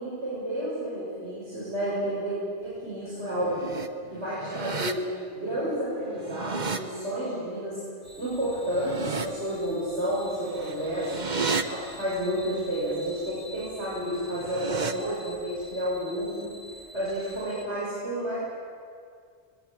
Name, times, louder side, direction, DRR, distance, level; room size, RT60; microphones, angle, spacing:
voice 1, 0.0-2.4 2.6-3.6 4.1-5.0 5.3-7.8 8.2-11.2 11.6-16.5 16.9-18.4, equal, 70° right, -9 dB, 7.1 m, -31 dB
sound 1, 3.3-3.9 4.3-4.9 6.1-6.8 8.6-9.3 10.5-11.6 14.2-14.9, right 4 dB, 40° right, 1.1 m, -32 dB
sound 2, 8.0-17.7, equal, 45° left, 6.6 m, -48 dB
22.0 x 20.5 x 8.9 m, 2.2 s
omnidirectional pair, 1.2 m